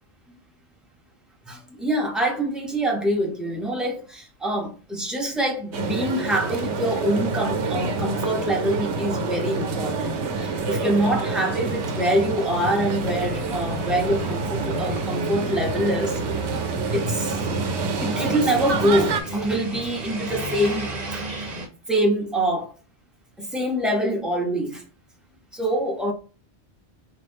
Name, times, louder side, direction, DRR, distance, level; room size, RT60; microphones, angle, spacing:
voice 1, 1.5-16.5 16.9-17.4 18.0-21.3 21.9-22.7 23.4-24.8 25.5-26.1, right 1 dB, ahead, 0.8 m, -25 dB
sound 1, 5.7-19.2, right 4 dB, 85° right, 1.0 m, -27 dB
sound 2, 10.5-21.7, right 2 dB, 40° right, 0.9 m, -35 dB
4.0 x 2.6 x 3.4 m
omnidirectional pair, 1.1 m